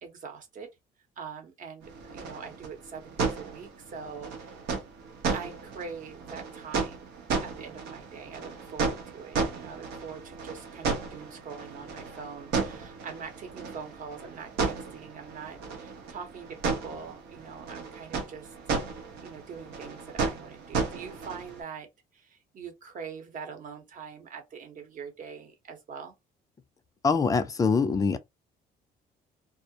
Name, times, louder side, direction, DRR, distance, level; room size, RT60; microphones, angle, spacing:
voice 1, 0.0-0.7 1.2-1.8 2.1-4.5 5.3-7.1 7.4-18.5 18.9-21.9 22.1-26.2, right 6 dB, 50° right, 0.9 m, -43 dB
sound 1, 1.8-21.6, right 4 dB, 80° right, 0.8 m, -34 dB
voice 2, 27.0-28.2, left 4 dB, 20° left, 0.4 m, -24 dB
2.3 x 2.0 x 2.7 m
cardioid pair, 110°, 17 cm